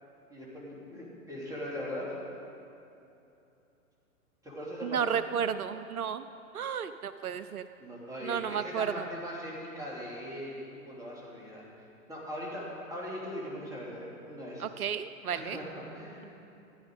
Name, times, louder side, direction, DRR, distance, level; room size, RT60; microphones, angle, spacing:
voice 1, 0.3-2.1 4.4-5.2 7.8-11.7 12.1-14.6 15.3-16.3, equal, 5° right, -6 dB, 3.0 m, -40 dB
voice 2, 4.8-6.2 6.5-7.7 8.2-9.0 14.6-15.6, right 7 dB, 80° right, 12 dB, 0.5 m, -32 dB
14.5 x 9.8 x 5.2 m, 2.8 s
figure-of-eight pair, 110°, 44 cm